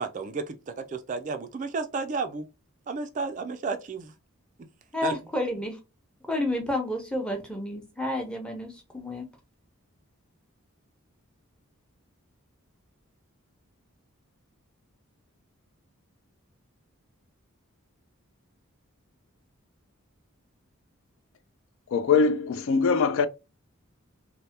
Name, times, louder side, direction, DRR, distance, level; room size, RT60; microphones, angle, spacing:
voice 1, 0.0-2.5 2.9-4.1 5.0-5.2, right 4 dB, 35° right, 0.3 m, -32 dB
voice 2, 4.9-5.8 6.3-9.3, left 1 dB, 5° left, 0.7 m, -30 dB
voice 3, 21.9-23.3, left 5 dB, 65° left, 0.3 m, -22 dB
3.3 x 2.1 x 2.7 m
head